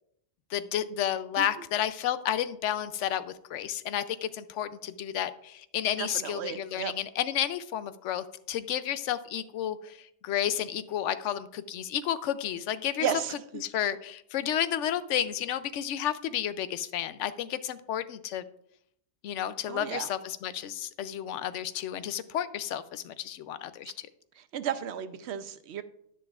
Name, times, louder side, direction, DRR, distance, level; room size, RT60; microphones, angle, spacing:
voice 1, 0.5-13.1 13.5-18.4 19.2-23.9, left 10 dB, 90° left, 14 dB, 0.9 m, -31 dB
voice 2, 6.0-6.9 13.0-13.6 19.7-20.1 24.5-25.8, right 9 dB, 70° right, 12 dB, 0.8 m, -33 dB
10.0 x 10.0 x 2.4 m, 0.72 s
omnidirectional pair, 1.2 m